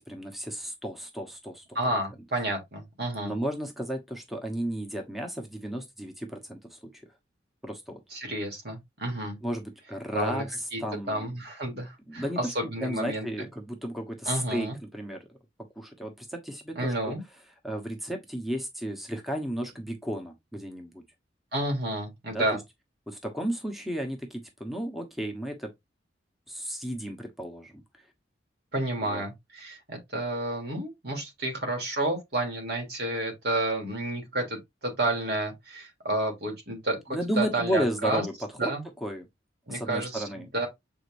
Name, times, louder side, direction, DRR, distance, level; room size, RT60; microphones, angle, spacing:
voice 1, 0.0-1.6 3.2-7.0 7.6-8.0 9.4-11.3 12.1-15.2 15.8-17.1 17.6-21.0 22.3-22.6 23.1-25.7 26.5-28.0 29.0-29.2 37.1-38.3 38.6-38.7 39.0-39.3 39.7-40.5, right 1 dB, ahead, 1.0 m, -33 dB
voice 2, 1.7-3.3 8.1-9.4 10.1-10.4 10.7-10.8 11.1-13.3 14.2-14.7 16.8-17.2 21.5-22.6 28.7-38.2 38.6-38.8 39.7-40.2 40.5-40.7, right 1 dB, 60° right, 2.9 m, -30 dB
7.1 x 5.0 x 2.6 m
head